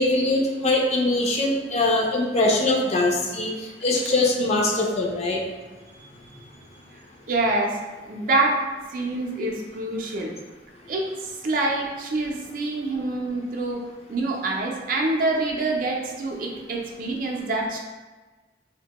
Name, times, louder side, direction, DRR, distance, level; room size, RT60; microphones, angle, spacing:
voice 1, 0.0-3.5 3.8-5.4, left 2 dB, 35° left, 0 dB, 0.4 m, -22 dB
voice 2, 7.3-8.6 8.9-10.3 10.9-13.8 14.1-17.8, right 2 dB, 50° right, 0 dB, 0.4 m, -26 dB
2.8 x 2.1 x 2.8 m, 1.2 s
head